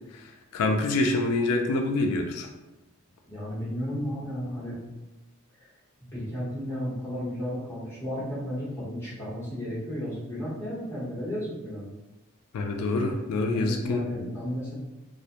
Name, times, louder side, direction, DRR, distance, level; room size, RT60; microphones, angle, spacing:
voice 1, 0.1-2.5 12.5-14.0, left 2 dB, 85° left, 4 dB, 0.3 m, -26 dB
voice 2, 3.3-4.8 6.1-11.9 13.5-14.7, equal, 10° left, -9 dB, 0.8 m, -33 dB
2.4 x 2.0 x 2.7 m, 1.0 s
head